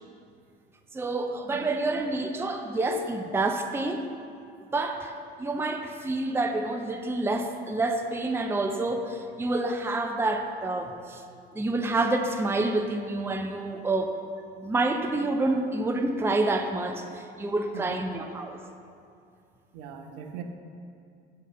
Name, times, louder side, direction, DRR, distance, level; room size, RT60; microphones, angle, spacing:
voice 1, 0.9-4.0 4.7-5.1 5.4-11.2 11.5-14.2 14.6-18.6, right 2 dB, 10° right, 5 dB, 0.6 m, -28 dB
voice 2, 19.7-20.4, right 8 dB, 60° right, 5 dB, 0.8 m, -40 dB
6.3 x 5.8 x 6.6 m, 2.4 s
hypercardioid pair, 65°, 29 cm